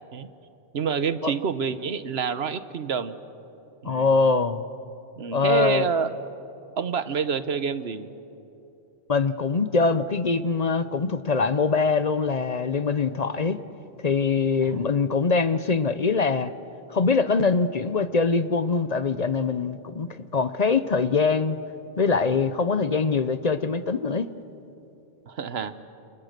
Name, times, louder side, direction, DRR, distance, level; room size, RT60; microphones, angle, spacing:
voice 1, 0.7-3.1 3.8-4.2 5.2-6.1 6.8-8.1 14.6-14.8 25.3-25.7, right 6 dB, 75° right, 12 dB, 1.2 m, -27 dB
voice 2, 3.8-4.6 5.3-5.9 9.1-13.6 14.0-16.5 16.9-21.6 22.0-24.3, left 4 dB, 45° left, 13 dB, 0.7 m, -23 dB
30.0 x 28.0 x 6.7 m, 2.9 s
omnidirectional pair, 1.1 m